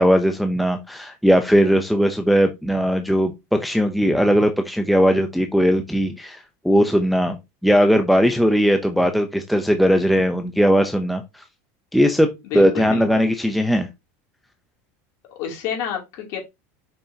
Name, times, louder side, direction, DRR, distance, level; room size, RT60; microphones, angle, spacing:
voice 1, 0.0-7.4 7.6-11.4 11.9-12.3 12.5-13.9, equal, ahead, 0.5 m, -18 dB
voice 2, 12.4-13.2 15.3-16.4, left 8 dB, 45° left, 2.7 m, -29 dB
6.9 x 5.6 x 2.7 m
supercardioid pair, 160°, 8 cm